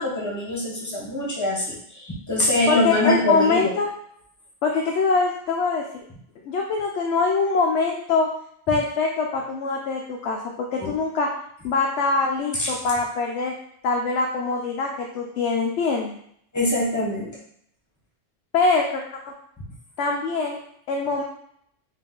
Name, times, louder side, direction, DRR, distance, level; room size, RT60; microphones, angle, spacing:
voice 1, 0.0-3.7 10.8-10.9 12.6-12.7 16.5-17.3, left 1 dB, 15° left, -4 dB, 1.1 m, -24 dB
voice 2, 2.7-3.9 4.6-6.0 6.4-8.3 8.7-11.3 11.6-13.5 13.8-16.1 18.5-19.3 20.0-20.6 20.9-21.2, left 4 dB, 90° left, 0 dB, 0.9 m, -23 dB
4.1 x 2.6 x 3.7 m, 0.68 s
omnidirectional pair, 1.1 m